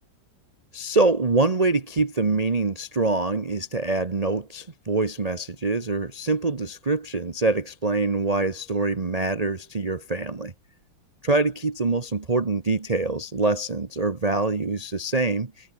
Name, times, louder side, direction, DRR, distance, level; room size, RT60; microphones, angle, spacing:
voice 1, 0.7-10.5 11.2-15.7, right 3 dB, 45° right, 0.5 m, -25 dB
omnidirectional pair, 2.4 m